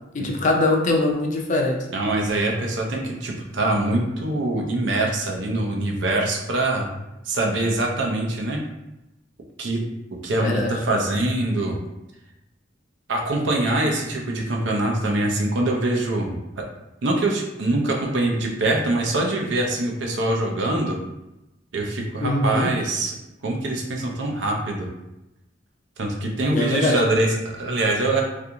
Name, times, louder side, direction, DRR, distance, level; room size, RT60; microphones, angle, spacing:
voice 1, 0.1-1.8 10.4-10.7 22.2-22.7 26.4-27.0, left 2 dB, 45° left, 1 dB, 0.4 m, -22 dB
voice 2, 1.9-6.9 7.2-8.6 9.6-9.8 10.2-11.8 13.1-16.6 17.0-21.0 21.7-23.1 23.4-24.9 26.0-28.2, right 2 dB, 80° right, 1 dB, 0.5 m, -24 dB
2.5 x 2.3 x 2.8 m, 0.94 s
head